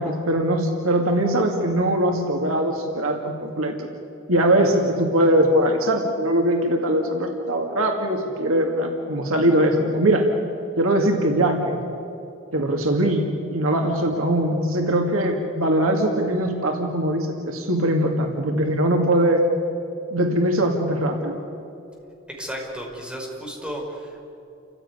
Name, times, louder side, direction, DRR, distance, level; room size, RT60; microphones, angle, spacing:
voice 1, 0.0-3.9 4.3-10.3 10.8-11.8 12.5-19.5 20.1-21.4, right 1 dB, 85° right, 2 dB, 2.2 m, -21 dB
voice 2, 22.3-24.2, equal, 5° right, -2 dB, 5.2 m, -33 dB
29.5 x 15.5 x 9.7 m, 2.9 s
head